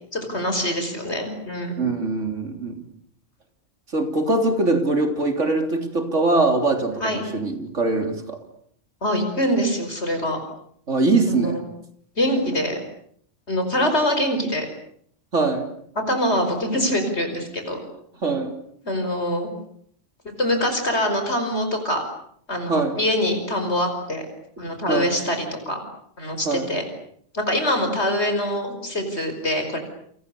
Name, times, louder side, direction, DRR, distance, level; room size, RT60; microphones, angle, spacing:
voice 1, 0.1-1.7 7.0-7.2 9.0-10.4 11.3-11.6 12.2-12.8 13.5-14.7 16.1-17.8 18.3-18.4 18.8-19.5 20.2-22.0 22.5-24.2 24.6-25.8 26.2-26.8 27.3-29.8, equal, 65° left, 6 dB, 5.5 m, -24 dB
voice 2, 1.8-2.9 3.9-8.4 10.9-11.6 15.3-15.7 18.2-18.5 22.7-23.0 24.9-25.1 26.5-26.7, right 3 dB, 80° right, 5 dB, 3.9 m, -22 dB
29.5 x 27.5 x 7.0 m, 0.66 s
omnidirectional pair, 1.2 m